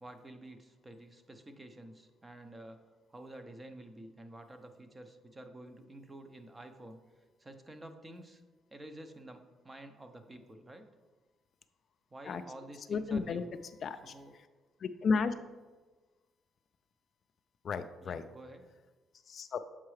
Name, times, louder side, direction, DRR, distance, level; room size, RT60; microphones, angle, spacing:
voice 1, 0.0-2.8 3.1-8.4 8.7-10.8 12.1-13.5 14.0-14.3 18.0-18.7, right 1 dB, 20° right, 7 dB, 0.6 m, -50 dB
voice 2, 12.9-13.4 13.8-14.5 14.8-15.4 17.6-18.2 19.3-19.6, left 5 dB, 50° left, 10 dB, 0.3 m, -33 dB
7.2 x 4.6 x 3.2 m, 1.3 s
cardioid pair, 95°, 0 cm